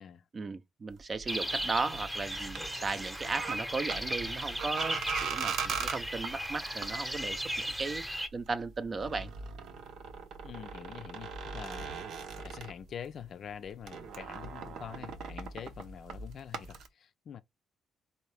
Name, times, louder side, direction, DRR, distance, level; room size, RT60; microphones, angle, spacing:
voice 1, 0.3-8.0 8.3-9.3, right 4 dB, 35° right, 0.6 m, -36 dB
sound 1, 0.9-13.3 13.5-16.9, right 5 dB, 75° right, 0.7 m, -41 dB
sound 2, 1.3-8.3, equal, 10° right, 0.8 m, -36 dB
voice 2, 10.4-17.4, left 8 dB, 60° left, 0.4 m, -45 dB
4.2 x 2.8 x 3.3 m
cardioid pair, 90°, 0 cm